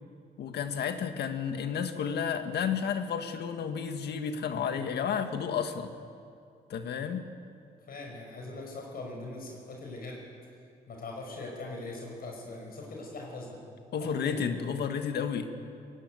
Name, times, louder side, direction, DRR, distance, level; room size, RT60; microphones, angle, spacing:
voice 1, 0.4-5.9 6.7-7.3 13.9-15.5, left 7 dB, 75° left, 7 dB, 1.7 m, -31 dB
voice 2, 7.9-10.2 10.9-13.6 13.9-14.4, left 2 dB, 60° left, 0 dB, 5.8 m, -41 dB
21.0 x 17.0 x 9.6 m, 2.3 s
cardioid pair, 85°, 17 cm